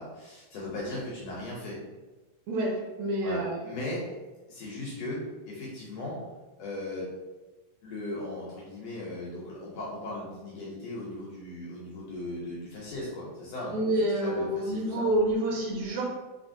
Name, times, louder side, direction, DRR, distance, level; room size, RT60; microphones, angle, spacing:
voice 1, 0.0-1.8 3.2-4.0 4.5-6.2 6.6-7.1 7.8-13.9 14.2-15.1, left 1 dB, 75° left, -5 dB, 1.6 m, -37 dB
voice 2, 2.5-3.6 13.7-16.0, right 1 dB, 75° right, -1 dB, 1.8 m, -28 dB
4.2 x 4.2 x 2.6 m, 1.2 s
omnidirectional pair, 3.7 m